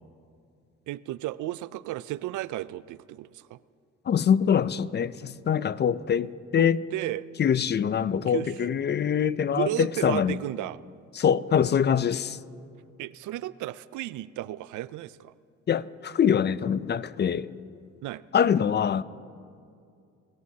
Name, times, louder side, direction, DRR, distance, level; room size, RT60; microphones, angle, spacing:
voice 1, 0.9-3.6 6.6-7.3 8.3-8.5 9.5-10.8 13.0-15.3 18.0-18.2, right 15 dB, 75° right, 0.5 m, -34 dB
voice 2, 4.1-6.8 7.4-10.4 11.2-12.4 15.7-17.5 18.3-19.0, left 8 dB, 35° left, 0.4 m, -24 dB
28.0 x 14.0 x 2.8 m
cardioid pair, 90°, 30 cm